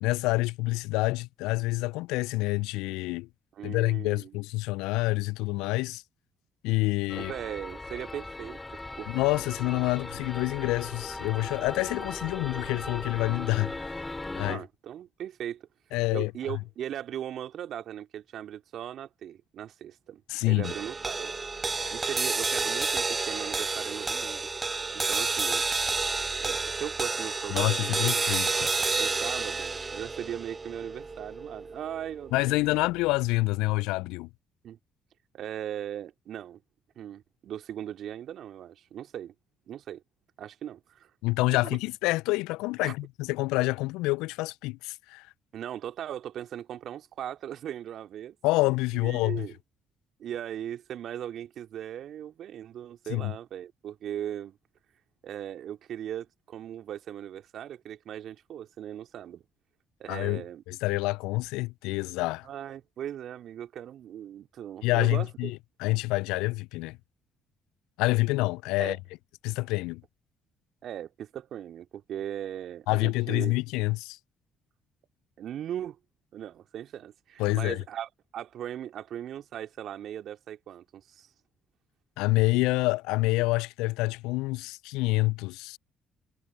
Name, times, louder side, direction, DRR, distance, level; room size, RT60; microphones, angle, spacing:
voice 1, 0.0-3.3 3.6-6.0 6.6-7.3 9.1-13.8 14.4-14.6 15.9-16.6 20.3-20.7 27.5-28.7 32.3-34.3 41.2-45.3 48.4-49.5 53.1-53.3 60.1-62.5 64.8-67.0 68.0-69.0 69.4-70.0 72.9-74.2 77.4-77.8 82.2-85.8, left 22 dB, 70° left, 0.5 m, -27 dB
voice 2, 3.6-4.3 7.2-9.1 14.5-15.7 16.1-21.3 21.9-24.5 24.9-25.6 26.4-28.2 29.0-32.8 34.6-34.8 35.3-36.6 37.0-39.3 39.7-40.0 40.4-41.1 41.6-41.8 42.8-42.9 45.5-48.7 49.0-49.5 50.2-54.6 55.2-59.4 60.0-60.6 62.4-65.5 68.8-69.0 70.8-73.5 75.4-76.0 76.3-81.3, right 10 dB, 60° right, 2.9 m, -39 dB
sound 1, 7.1-14.6, left 2 dB, 20° left, 3.4 m, -38 dB
sound 2, 20.6-33.1, right 4 dB, 30° right, 0.5 m, -30 dB
hypercardioid pair, 45°, 0 cm